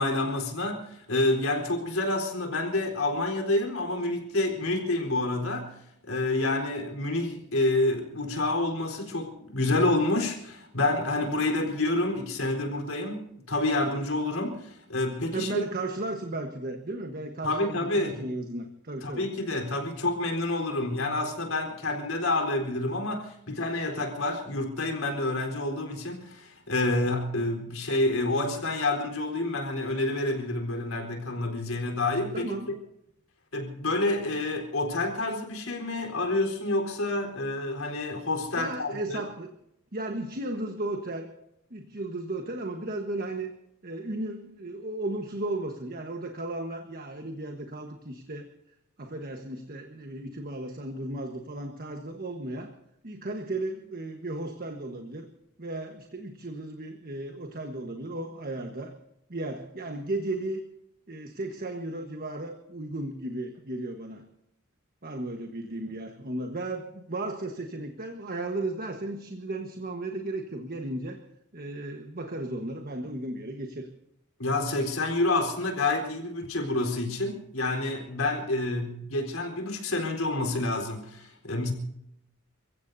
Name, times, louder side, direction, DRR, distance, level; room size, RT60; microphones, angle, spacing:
voice 1, 0.0-5.7 6.0-15.6 17.4-18.3 19.0-32.5 33.5-39.2 74.4-81.7, left 2 dB, 75° left, 2 dB, 4.2 m, -28 dB
voice 2, 15.3-19.3 32.3-32.7 38.6-39.5 39.9-41.3 41.7-43.5 43.8-48.5 49.0-52.7 53.0-55.3 55.6-58.9 59.3-60.6 61.1-64.3 65.0-71.2 71.5-73.9, right 2 dB, 45° right, 4 dB, 1.3 m, -35 dB
29.0 x 16.0 x 2.7 m, 0.79 s
head